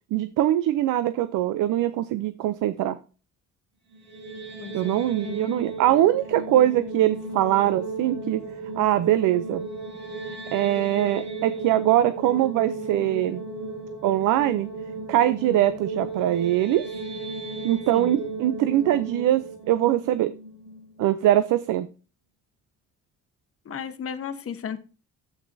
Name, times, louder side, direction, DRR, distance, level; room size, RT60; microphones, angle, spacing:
voice 1, 0.1-3.0 4.7-8.4 8.8-9.7 10.5-13.4 14.0-14.7 15.1-16.9 17.6-20.3 21.0-21.9, right 13 dB, 85° right, 13 dB, 0.6 m, -22 dB
sound 1, 3.9-21.0, right 3 dB, 60° right, 2.8 m, -35 dB
voice 2, 4.6-5.6 17.9-18.2 23.6-24.8, left 7 dB, 50° left, 9 dB, 1.1 m, -35 dB
10.5 x 8.3 x 2.7 m, 0.35 s
cardioid pair, 90°, 30 cm